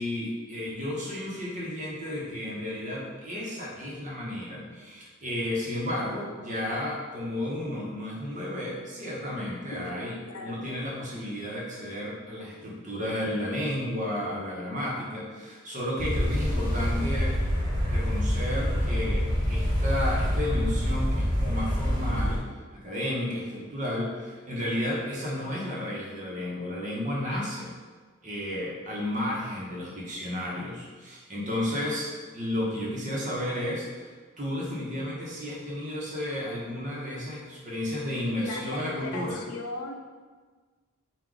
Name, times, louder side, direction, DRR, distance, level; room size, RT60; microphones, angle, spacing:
voice 1, 0.0-10.2 10.4-17.4 17.8-22.4 22.7-27.7 28.2-34.1 34.4-39.4, left 1 dB, 35° right, -4 dB, 0.9 m, -32 dB
voice 2, 10.2-10.6 38.2-39.9, left 2 dB, 85° left, 2 dB, 0.6 m, -38 dB
sound 1, 16.0-22.4, equal, 20° right, 1.2 m, -26 dB
4.6 x 2.4 x 3.8 m, 1.4 s
head